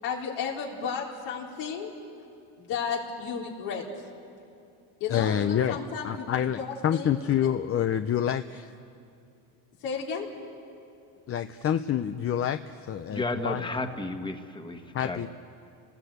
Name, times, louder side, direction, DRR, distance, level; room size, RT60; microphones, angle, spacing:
voice 1, 0.0-1.9 2.6-3.9 5.0-7.1 9.8-10.3, left 6 dB, 85° left, -2 dB, 3.9 m, -33 dB
voice 2, 5.1-5.8 6.0-8.7 11.3-13.6 14.9-15.3, left 9 dB, 35° left, 9 dB, 0.6 m, -27 dB
voice 3, 13.1-15.3, left 2 dB, 10° left, 6 dB, 1.5 m, -33 dB
29.5 x 19.5 x 8.1 m, 2.5 s
cardioid pair, 120°, 40 cm